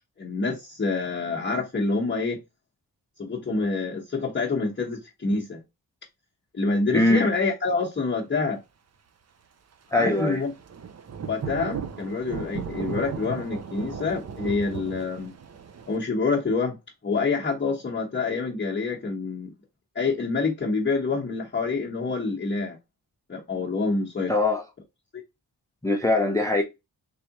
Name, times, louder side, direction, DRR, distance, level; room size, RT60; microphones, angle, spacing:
voice 1, 0.2-2.4 3.2-5.6 6.5-8.6 9.9-10.5 11.3-15.3 15.9-16.8 17.0-19.5 19.9-22.8 23.3-24.3, left 4 dB, 30° left, 0.9 m, -27 dB
voice 2, 6.9-7.3 9.9-10.4 24.3-24.6 25.8-26.6, left 2 dB, 10° left, 0.5 m, -22 dB
Thunder / Rain, 10.5-16.0, right 6 dB, 45° right, 0.5 m, -36 dB
3.6 x 3.3 x 2.9 m
wide cardioid pair, 140°, 38 cm